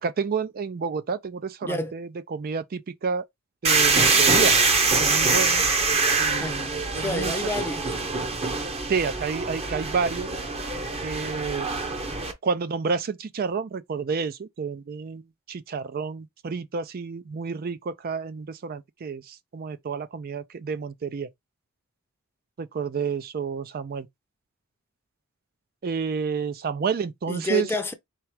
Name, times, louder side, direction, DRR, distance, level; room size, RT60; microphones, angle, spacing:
voice 1, 0.0-3.3 3.6-4.6 5.0-5.6 6.2-6.6 6.9-7.3 8.9-10.3 11.0-11.7 12.4-15.2 15.5-21.3 22.6-24.1 25.8-27.7, right 5 dB, 45° right, 0.4 m, -29 dB
voice 2, 1.6-1.9 6.4-8.0 27.3-27.9, left 2 dB, 10° left, 0.6 m, -30 dB
sound 1, 3.6-12.3, right 4 dB, 30° right, 0.9 m, -24 dB
4.5 x 3.5 x 3.3 m
head